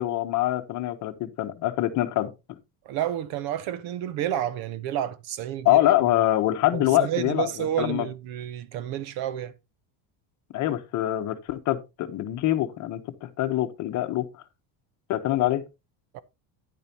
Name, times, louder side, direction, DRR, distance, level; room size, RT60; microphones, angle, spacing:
voice 1, 0.0-2.6 5.6-8.1 10.5-14.3 15.1-15.6, left 14 dB, 40° left, 1.0 m, -25 dB
voice 2, 2.8-5.8 6.7-9.5 16.1-16.2, right 11 dB, 50° right, 0.8 m, -30 dB
10.5 x 8.7 x 2.9 m
cardioid pair, 170°, 48 cm